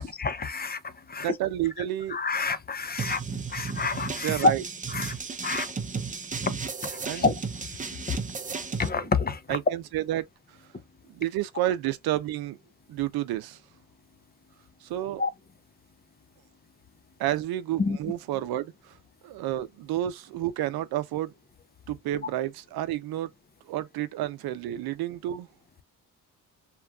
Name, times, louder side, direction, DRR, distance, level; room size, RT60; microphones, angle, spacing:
voice 1, 0.0-1.3 2.1-4.5 4.9-5.7 6.4-6.5 6.8-7.3 7.6-8.2 8.8-9.6 15.2-15.3 17.8-18.0, left 4 dB, 25° left, 0.6 m, -28 dB
voice 2, 1.2-2.2 4.2-4.6 7.1-7.3 8.6-8.8 9.5-10.6 11.1-12.6 12.9-13.6 14.8-15.2 17.2-19.0 19.2-21.3 21.9-23.3 23.7-25.5, right 13 dB, 80° right, 0.6 m, -30 dB
sound 1, 3.0-8.9, right 5 dB, 20° right, 0.6 m, -34 dB
3.0 x 2.3 x 2.3 m
cardioid pair, 65°, 37 cm